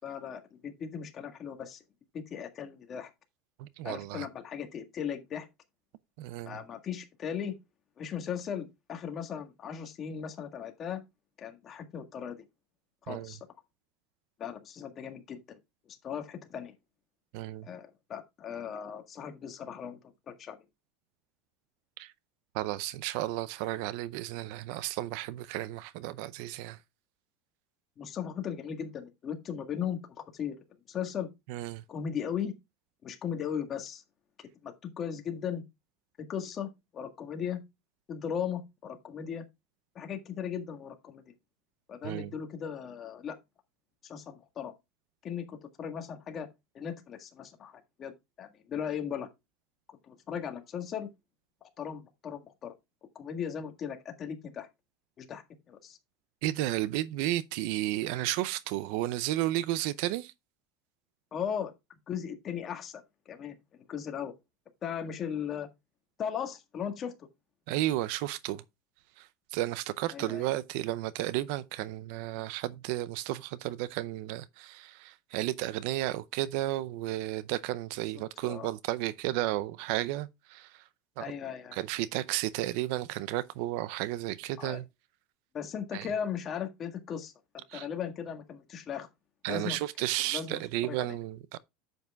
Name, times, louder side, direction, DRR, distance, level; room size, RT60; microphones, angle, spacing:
voice 1, 0.0-1.8 2.3-3.1 3.8-5.5 6.5-7.5 8.0-11.0 11.4-12.4 13.1-13.4 14.4-15.6 15.9-16.7 17.6-20.0 20.3-20.6 28.0-30.6 30.9-31.3 31.9-32.5 33.0-34.0 34.6-35.6 36.3-37.6 38.1-39.4 39.9-41.2 41.9-43.4 44.0-44.7 45.2-46.5 46.7-49.3 50.0-51.1 51.6-52.7 53.1-54.7 55.2-55.4 55.7-56.0 61.3-61.7 62.1-64.3 64.8-65.7 66.2-67.1 70.1-70.4 78.4-78.7 81.2-81.8 84.6-84.8 85.5-87.3 87.7-89.1 89.5-89.8 90.3-90.6 90.9-91.1, left 8 dB, 30° left, 1.7 m, -37 dB
voice 2, 3.6-4.3 6.2-6.6 13.1-13.3 17.3-17.7 22.0-22.1 22.5-26.8 31.5-31.8 42.0-42.3 56.4-60.3 67.7-68.6 69.2-80.9 81.2-81.3 81.7-84.9 85.9-86.1 87.7-87.9 89.4-91.6, right 15 dB, 65° right, 0.5 m, -33 dB
10.5 x 7.9 x 2.3 m
supercardioid pair, 150°, 0 cm